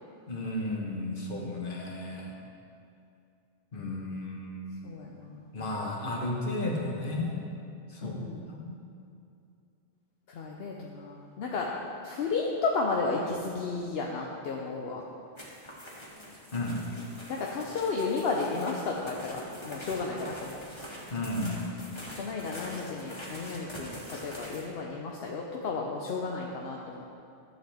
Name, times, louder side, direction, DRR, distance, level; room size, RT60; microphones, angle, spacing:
voice 1, 0.3-2.3 3.7-4.9 5.5-7.5 7.9-8.2 8.5-8.8 16.5-16.8 21.1-21.7, left 2 dB, 55° left, -1 dB, 1.4 m, -33 dB
voice 2, 4.8-5.5 8.0-8.5 10.3-11.7 12.0-15.0 17.3-20.6 22.2-27.0, left 4 dB, 70° left, -1 dB, 1.0 m, -33 dB
sound 1, 15.4-24.7, equal, 25° left, 1.3 m, -44 dB
12.0 x 7.5 x 3.5 m, 2.6 s
omnidirectional pair, 1.1 m